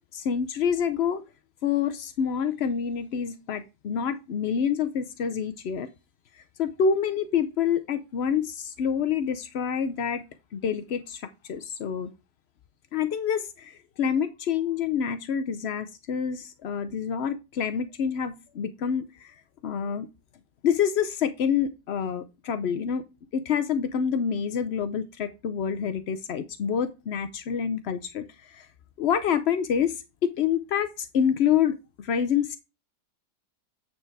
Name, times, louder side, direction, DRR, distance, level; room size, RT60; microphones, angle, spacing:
voice 1, 0.1-1.2 1.6-5.9 6.6-10.2 10.5-12.1 12.9-19.3 19.6-20.1 20.6-23.0 23.3-28.7 29.0-29.9 30.2-32.6, left 7 dB, 65° left, 10 dB, 0.6 m, -27 dB
9.2 x 4.4 x 4.7 m, 0.27 s
omnidirectional pair, 1.9 m